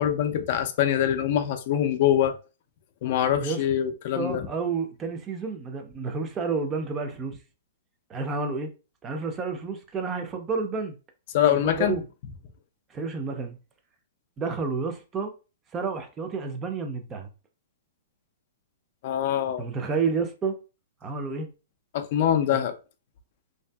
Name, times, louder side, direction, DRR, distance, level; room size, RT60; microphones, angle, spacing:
voice 1, 0.0-2.4 3.0-4.5 11.3-12.0 19.0-19.7 21.9-22.7, left 10 dB, 50° left, 0.4 m, -24 dB
voice 2, 4.1-7.4 8.1-8.7 9.0-10.9 11.5-12.0 12.9-13.6 14.4-15.3 15.7-17.3 19.6-20.6 21.0-21.5 22.5-22.7, right 4 dB, 20° right, 0.4 m, -30 dB
2.6 x 2.5 x 2.2 m
hypercardioid pair, 145°, 0 cm